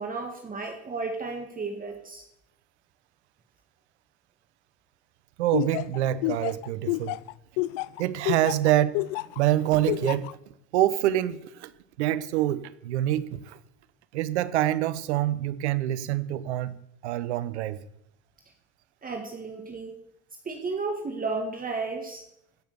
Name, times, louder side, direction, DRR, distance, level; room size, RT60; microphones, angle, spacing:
voice 1, 0.0-2.2 19.0-20.0 20.5-22.2, right 3 dB, 25° right, 2.0 m, -33 dB
voice 2, 5.4-7.2 8.0-9.1 9.3-10.4 10.7-11.7 12.0-13.6 14.1-16.8 17.0-17.8, right 13 dB, 85° right, 0.9 m, -26 dB
Laughter, 5.5-9.4 9.9-10.3, left 21 dB, 70° left, 0.5 m, -28 dB
16.0 x 6.9 x 6.9 m
hypercardioid pair, 85°, 33 cm